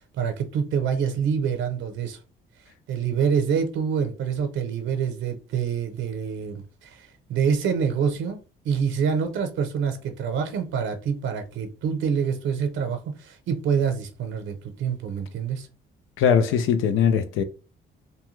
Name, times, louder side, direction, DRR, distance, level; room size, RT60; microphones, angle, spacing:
voice 1, 0.2-2.2 2.9-8.4 8.6-15.7, right 7 dB, 75° right, 0.6 m, -26 dB
voice 2, 16.2-17.4, left 7 dB, 85° left, 0.4 m, -20 dB
2.7 x 2.2 x 3.1 m
cardioid pair, 90°, 20 cm